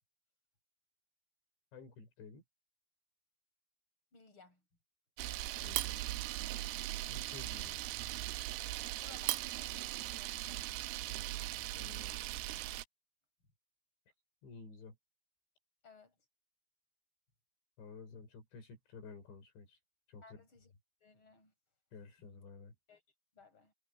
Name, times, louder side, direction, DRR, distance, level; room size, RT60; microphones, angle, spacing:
voice 1, 1.7-2.4 5.6-6.0 7.1-7.8 11.0-12.2 14.4-15.0 17.8-19.8 20.1-20.4 21.9-22.7, left 4 dB, 70° left, 7.4 m, -52 dB
voice 2, 4.1-4.6 7.0-7.2 9.0-11.0 15.8-16.1 20.2-20.7 21.0-21.5 22.9-23.0 23.3-23.7, left 4 dB, 25° left, 8.3 m, -60 dB
Camera, 5.2-12.8, right 16 dB, 80° right, 2.4 m, -39 dB
omnidirectional pair, 5.4 m